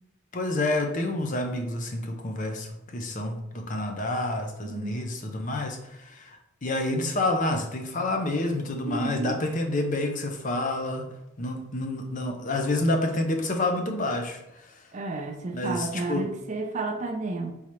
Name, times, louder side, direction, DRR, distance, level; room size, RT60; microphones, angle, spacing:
voice 1, 0.3-11.1 11.4-14.9 15.5-16.3, left 2 dB, 35° left, 4 dB, 0.6 m, -29 dB
voice 2, 4.6-5.0 8.9-9.4 14.9-17.5, right 3 dB, 35° right, 4 dB, 0.4 m, -31 dB
4.2 x 3.7 x 3.1 m, 0.84 s
head